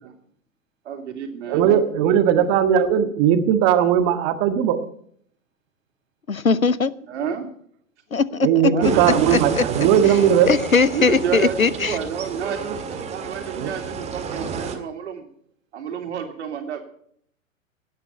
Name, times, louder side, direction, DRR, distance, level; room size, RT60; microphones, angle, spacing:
voice 1, 0.8-1.8 2.4-2.5 7.1-7.5 8.7-9.6 10.9-12.6 12.9-15.3 15.7-16.8, right 7 dB, 55° right, 3.3 m, -29 dB
voice 2, 1.5-4.8 8.4-10.5 13.6-13.7, right 9 dB, 30° right, 1.7 m, -18 dB
voice 3, 6.3-6.9 8.1-9.6 10.0-12.0, left 4 dB, 90° left, 0.9 m, -21 dB
sound 1, 8.8-14.8, right 6 dB, 15° right, 1.8 m, -30 dB
18.0 x 10.0 x 5.6 m
figure-of-eight pair, 110°, 40 cm